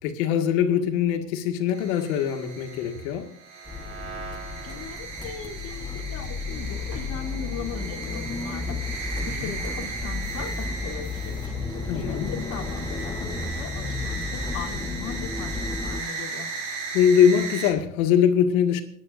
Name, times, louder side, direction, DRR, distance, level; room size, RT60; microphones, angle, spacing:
voice 1, 0.0-3.4 9.2-9.5 11.9-12.4 16.9-18.8, left 8 dB, 85° left, 2.0 m, -22 dB
sound 1, 1.7-17.7, right 4 dB, 40° right, 5.4 m, -37 dB
sound 2, 3.7-16.0, left 4 dB, 10° left, 1.2 m, -33 dB
voice 2, 4.6-16.5, left 7 dB, 50° left, 3.4 m, -39 dB
28.0 x 10.5 x 2.6 m
cardioid pair, 135°, 40 cm